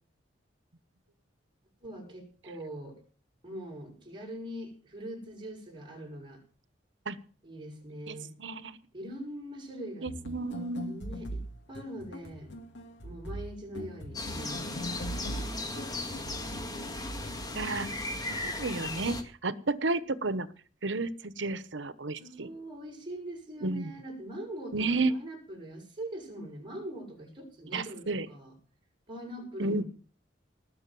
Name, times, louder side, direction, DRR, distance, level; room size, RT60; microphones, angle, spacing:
voice 1, 1.8-3.0 3.4-6.4 7.4-8.3 8.9-10.1 10.8-11.4 11.7-12.5 13.0-15.0 22.2-28.5 29.1-29.8, right 1 dB, 25° right, 0 dB, 6.6 m, -42 dB
voice 2, 8.1-8.8 10.0-10.9 17.5-17.9 18.3-20.5 20.8-22.5 23.6-23.9 24.7-25.1 27.7-28.3 29.6-29.8, right 3 dB, 90° right, 14 dB, 1.1 m, -32 dB
sound 1, 10.1-17.9, equal, 75° left, 2.1 m, -41 dB
sound 2, 14.1-19.2, left 2 dB, 20° left, 2.0 m, -36 dB
19.5 x 6.5 x 7.7 m, 0.40 s
head